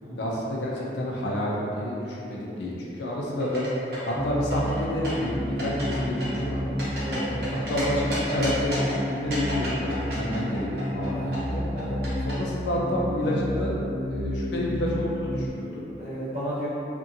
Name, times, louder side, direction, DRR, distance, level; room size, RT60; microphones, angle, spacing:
voice 1, 0.1-3.6 4.1-6.8 7.5-11.7 12.2-13.8 14.1-15.8, left 1 dB, 75° left, -4 dB, 0.4 m, -29 dB
sound 1, 3.4-4.1 4.5-5.3 5.6-6.0 6.2-7.8 8.1-8.9 9.3-11.1 11.3-12.3, equal, 60° right, 0.8 m, -34 dB
sound 2, 4.1-15.5, equal, 20° left, 0.6 m, -31 dB
voice 2, 6.9-7.4 11.1-11.5 11.7-12.0 16.0-16.7, equal, 35° right, -14 dB, 1.0 m, -34 dB
2.7 x 2.5 x 2.6 m, 2.9 s
head